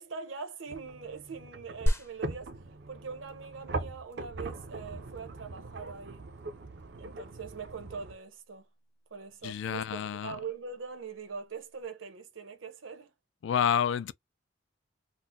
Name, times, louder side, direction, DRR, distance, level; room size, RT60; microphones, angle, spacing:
voice 1, 0.0-2.5 2.9-6.3 7.0-8.7 9.1-13.1 13.5-13.6, right 5 dB, 75° right, 0.8 m, -42 dB
sound 1, 0.7-8.1, right 2 dB, 55° right, 0.5 m, -41 dB
sound 2, 1.9-11.8, equal, 10° left, 0.5 m, -39 dB
voice 2, 9.4-10.4 13.4-14.1, left 8 dB, 65° left, 0.3 m, -29 dB
4.0 x 2.0 x 2.6 m
head